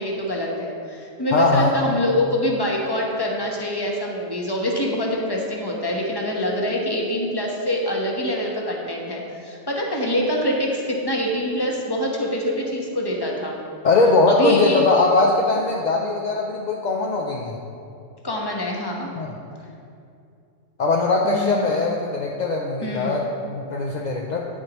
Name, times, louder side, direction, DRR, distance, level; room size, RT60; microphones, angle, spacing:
voice 1, 0.0-13.6 14.3-14.8 18.2-19.2 21.2-21.7 22.8-23.1, left 1 dB, 20° left, -1 dB, 1.0 m, -25 dB
voice 2, 1.3-1.7 13.8-17.6 19.2-19.3 20.8-24.5, left 3 dB, 55° left, -1 dB, 0.5 m, -20 dB
9.3 x 8.2 x 3.0 m, 2.6 s
omnidirectional pair, 1.3 m